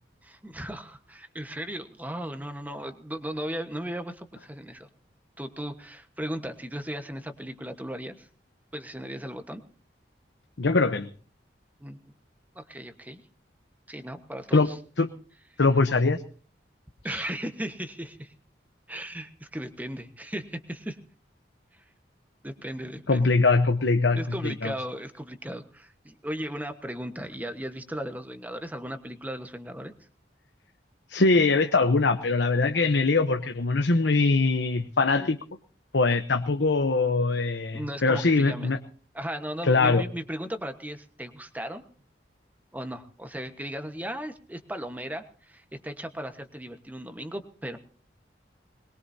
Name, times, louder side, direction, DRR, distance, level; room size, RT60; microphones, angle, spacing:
voice 1, 0.2-4.9 5.4-8.3 8.7-9.6 11.8-12.0 12.5-13.2 13.9-14.8 17.0-18.3 18.9-21.0 21.8-21.9 22.4-23.3 24.2-29.9 35.2-35.3 37.7-38.7 39.1-41.8 42.7-47.8, equal, 10° right, 7 dB, 1.3 m, -36 dB
voice 2, 10.6-11.1 14.5-14.7 15.0-15.1 15.6-16.2 17.1-17.2 23.1-24.7 31.1-35.4 35.9-38.8 39.6-40.0, left 3 dB, 80° left, 7 dB, 0.9 m, -22 dB
21.5 x 21.5 x 2.8 m, 0.43 s
head